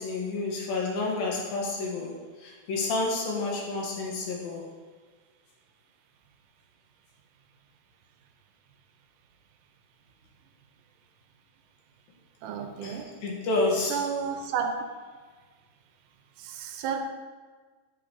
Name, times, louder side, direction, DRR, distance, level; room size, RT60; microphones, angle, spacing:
voice 1, 0.0-4.7 12.8-14.1, left 3 dB, 65° left, -3 dB, 3.0 m, -30 dB
voice 2, 12.4-13.1 13.9-14.7 16.4-17.0, right 7 dB, 85° right, 5 dB, 3.0 m, -31 dB
9.1 x 5.0 x 6.9 m, 1.5 s
omnidirectional pair, 4.8 m